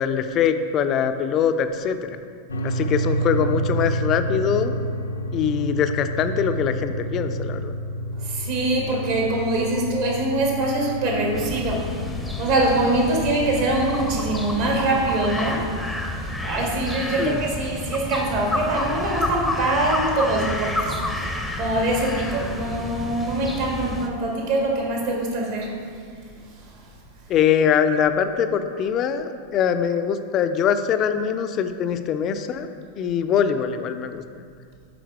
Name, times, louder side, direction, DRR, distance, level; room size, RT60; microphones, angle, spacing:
voice 1, 0.0-2.1 2.6-4.7 5.3-7.8 17.2-17.4 27.3-32.7 33.0-34.4, left 8 dB, 35° left, 9 dB, 0.4 m, -23 dB
sound 1, 2.5-14.8, right 1 dB, 75° left, 0.6 m, -29 dB
voice 2, 8.2-11.9 12.4-15.7 16.4-25.8, right 2 dB, 50° right, -1 dB, 1.5 m, -24 dB
sound 2, 11.3-24.1, left 1 dB, ahead, 0.7 m, -30 dB
9.2 x 3.9 x 4.5 m, 2.2 s
figure-of-eight pair, 90°, 0 cm